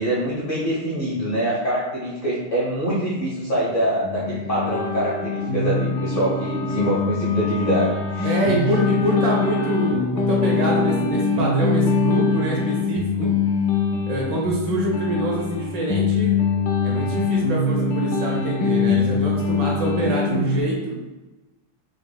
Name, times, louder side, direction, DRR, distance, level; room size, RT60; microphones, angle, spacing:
voice 1, 0.0-8.5, right 1 dB, 55° left, -8 dB, 0.6 m, -24 dB
sound 1, 4.0-20.6, left 4 dB, 80° left, 0.9 m, -23 dB
Wind instrument woodwind instrument, 5.6-10.0, left 3 dB, 30° left, 1.4 m, -37 dB
voice 2, 8.2-13.3 14.1-16.3 16.8-21.0, right 1 dB, 65° right, -2 dB, 1.3 m, -25 dB
5.0 x 4.0 x 2.2 m, 1.1 s
omnidirectional pair, 2.4 m